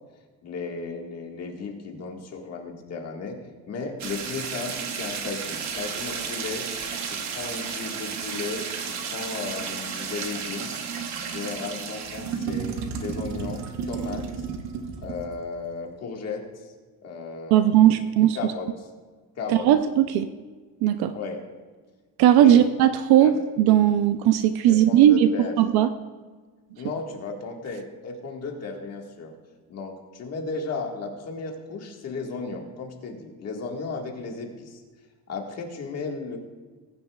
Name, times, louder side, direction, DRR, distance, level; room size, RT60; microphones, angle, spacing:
voice 1, 0.4-3.4 3.7-6.6 7.1-10.7 11.3-14.5 15.0-16.7 17.0-18.1 18.3-18.9 19.4-19.7 21.1-21.4 22.4-22.6 23.2-23.3 24.7-25.5 26.8-29.3 29.7-34.8 35.3-36.4, left 4 dB, 40° left, 1 dB, 1.6 m, -35 dB
sound 1, 4.0-15.4, right 6 dB, 45° right, 1.0 m, -32 dB
voice 2, 17.5-18.5 19.5-20.3 20.8-21.1 22.2-25.9, right 11 dB, 65° right, 10 dB, 0.6 m, -18 dB
20.5 x 9.6 x 2.3 m, 1.4 s
cardioid pair, 175°, 41 cm